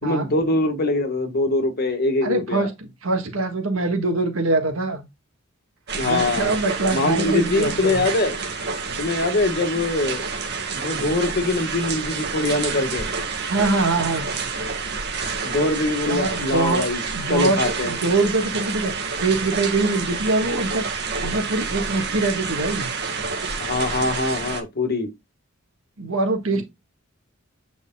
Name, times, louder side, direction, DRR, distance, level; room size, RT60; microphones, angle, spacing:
voice 1, 0.0-2.7 5.9-6.5 6.9-8.4 9.0-10.2 10.7-13.1 15.4-17.0 17.3-17.9 23.6-25.1 26.5-26.6, left 2 dB, 50° left, 1.6 m, -23 dB
voice 2, 2.2-5.0 6.0-8.0 13.5-14.3 16.1-16.8 17.1-20.9 21.2-22.9 26.0-26.6, right 2 dB, 85° right, 1.6 m, -23 dB
sound 1, 5.9-24.6, right 4 dB, 55° right, 1.7 m, -28 dB
8.4 x 5.1 x 2.3 m
head